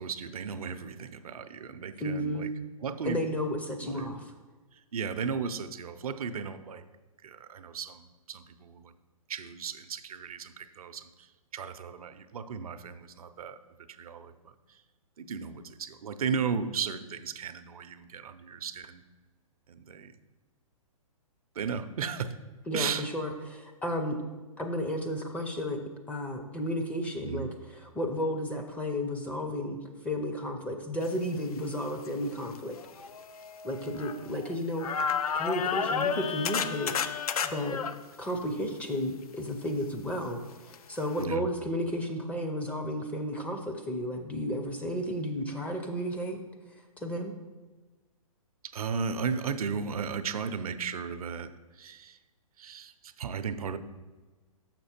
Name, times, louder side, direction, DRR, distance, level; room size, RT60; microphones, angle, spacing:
voice 1, 0.0-2.5 2.8-3.2 3.8-4.2 4.7-6.8 7.2-8.9 9.3-13.6 13.9-14.8 15.2-19.0 19.7-20.1 21.5-22.3 22.7-23.0 27.2-27.5 41.2-41.5 48.6-52.2 52.6-53.8, right 6 dB, 75° right, 11 dB, 0.6 m, -35 dB
voice 2, 2.0-2.5 3.0-4.2 22.7-24.2 24.6-25.8 26.1-32.8 33.6-36.9 37.4-37.8 38.2-46.4 47.0-47.3, equal, 5° left, 3 dB, 0.5 m, -33 dB
sound 1, 32.0-32.1 32.8-34.5 34.8-37.9 40.7-40.8 41.2-41.3, left 7 dB, 75° left, 0.5 m, -31 dB
6.3 x 5.9 x 4.3 m, 1.3 s
hypercardioid pair, 135°, 19 cm